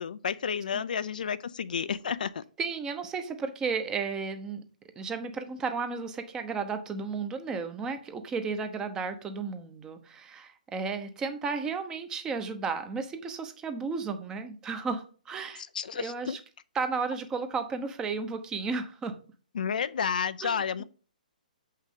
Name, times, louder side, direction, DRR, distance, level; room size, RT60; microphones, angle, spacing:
voice 1, 0.0-2.4 15.7-16.4 19.5-20.8, left 7 dB, 70° left, 0.5 m, -31 dB
voice 2, 2.6-4.6 5.0-15.6 16.0-16.4 16.7-19.1 20.4-20.6, right 4 dB, 15° right, 0.8 m, -33 dB
7.2 x 5.6 x 3.7 m
hypercardioid pair, 145°, 5 cm